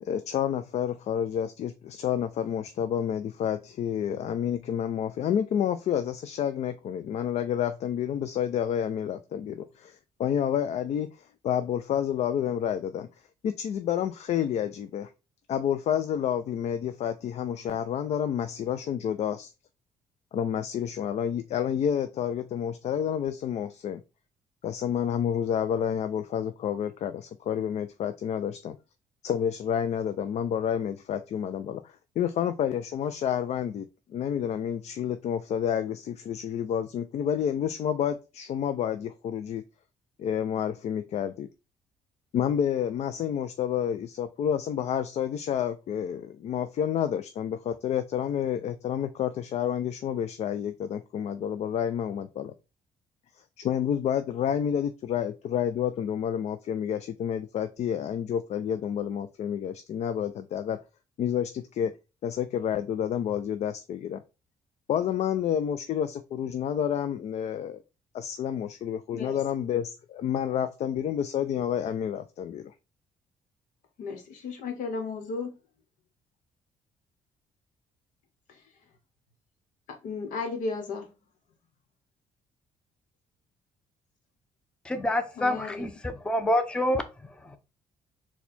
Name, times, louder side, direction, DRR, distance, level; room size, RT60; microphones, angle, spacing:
voice 1, 0.0-11.1 11.4-13.1 13.4-15.1 15.5-19.5 20.3-24.0 24.6-28.8 29.2-39.6 40.2-41.5 42.3-52.5 53.6-60.8 61.2-61.9 62.2-64.2 64.9-67.8 68.1-72.7, left 9 dB, 60° left, 0.4 m, -29 dB
voice 2, 74.0-75.5 78.5-78.6 79.9-81.1 85.4-85.8, left 4 dB, 85° left, 1.1 m, -34 dB
voice 3, 84.8-87.6, left 1 dB, 5° left, 0.6 m, -28 dB
4.2 x 2.3 x 4.2 m
cardioid pair, 95°, 13 cm